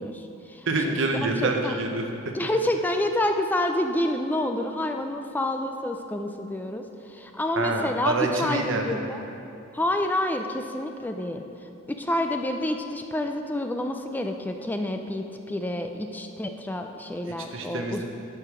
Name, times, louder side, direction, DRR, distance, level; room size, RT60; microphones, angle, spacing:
voice 1, 0.0-0.9 1.4-1.8 2.3-8.1 8.4-9.2 9.7-11.4 11.9-18.0, left 1 dB, 10° left, 5 dB, 0.3 m, -28 dB
voice 2, 0.7-2.3 7.6-9.0 17.3-18.0, right 2 dB, 65° right, 3 dB, 0.9 m, -27 dB
13.0 x 4.8 x 4.9 m, 2.7 s
head